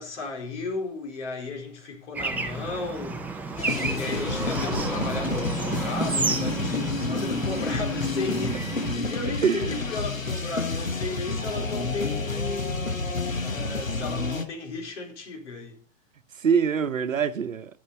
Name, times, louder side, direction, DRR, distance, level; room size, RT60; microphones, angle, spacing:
voice 1, 0.0-3.6 3.9-12.9 13.3-15.8, left 3 dB, 60° left, 4.3 m, -35 dB
Bird / Traffic noise roadway noise, 2.1-8.9, right 4 dB, 5° right, 0.5 m, -31 dB
sound 1, 3.6-14.4, left 3 dB, 90° left, 1.4 m, -29 dB
voice 2, 9.4-9.8 11.5-11.7 16.3-17.8, right 6 dB, 75° right, 0.9 m, -25 dB
12.0 x 6.8 x 5.7 m
figure-of-eight pair, 110°, 39 cm